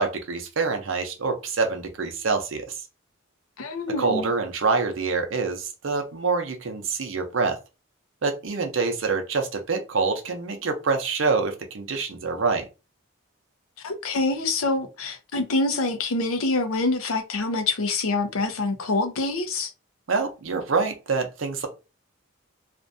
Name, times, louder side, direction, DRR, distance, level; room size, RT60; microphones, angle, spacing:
voice 1, 0.0-2.8 4.0-7.6 8.2-12.7 20.1-21.7, right 4 dB, 70° right, 0.6 m, -26 dB
voice 2, 3.6-4.3 13.8-19.7, left 3 dB, 90° left, 0.5 m, -26 dB
2.5 x 2.2 x 2.5 m
head